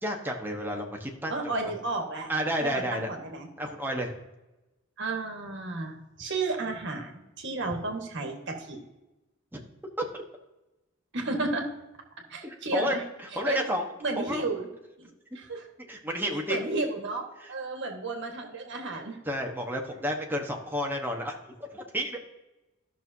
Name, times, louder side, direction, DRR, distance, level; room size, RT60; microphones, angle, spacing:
voice 1, 0.0-1.5 2.3-3.1 3.6-4.1 9.5-9.6 10.0-10.1 12.4-12.9 13.4-13.8 14.2-14.5 15.9-16.6 19.3-22.2, equal, 10° right, 1 dB, 1.2 m, -31 dB
voice 2, 1.3-2.3 2.6-3.5 5.0-8.8 11.1-11.7 12.3-13.0 13.3-13.6 14.0-14.7 15.0-15.7 16.5-19.2, right 3 dB, 60° right, 2 dB, 1.6 m, -33 dB
13.5 x 6.2 x 2.8 m, 1.0 s
head